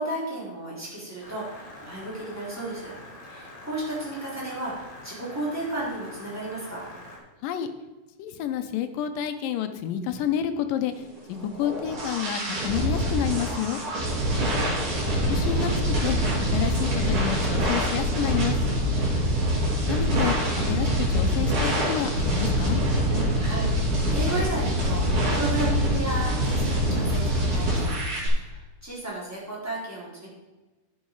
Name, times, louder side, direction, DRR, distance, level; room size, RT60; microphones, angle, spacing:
voice 1, 0.0-2.9 3.2-6.9 14.2-14.4 23.4-27.9 28.3-30.3, right 1 dB, 5° right, -7 dB, 3.6 m, -33 dB
sound 1, 1.2-7.2, left 1 dB, 10° left, 2.0 m, -45 dB
voice 2, 8.2-13.8 15.3-16.2 16.5-18.7 19.9-22.8, left 9 dB, 80° left, 8 dB, 2.3 m, -29 dB
sound 2, 11.3-28.3, equal, 60° right, 4.3 m, -25 dB
11.0 x 7.4 x 4.7 m, 1.1 s
omnidirectional pair, 4.1 m